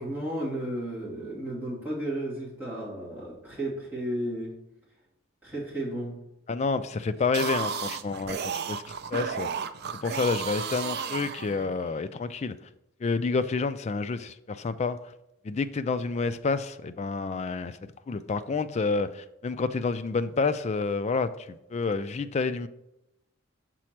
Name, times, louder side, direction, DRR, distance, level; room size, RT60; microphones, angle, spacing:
voice 1, 0.0-4.5 5.4-6.2, right 1 dB, 10° right, -8 dB, 2.5 m, -33 dB
voice 2, 6.5-8.8 9.1-9.5 9.9-12.6 13.0-15.0 15.4-17.8 18.1-22.7, left 4 dB, 30° left, 11 dB, 0.3 m, -29 dB
sound 1, 7.2-11.9, right 6 dB, 50° right, 0.4 m, -33 dB
6.1 x 4.2 x 4.5 m, 0.88 s
head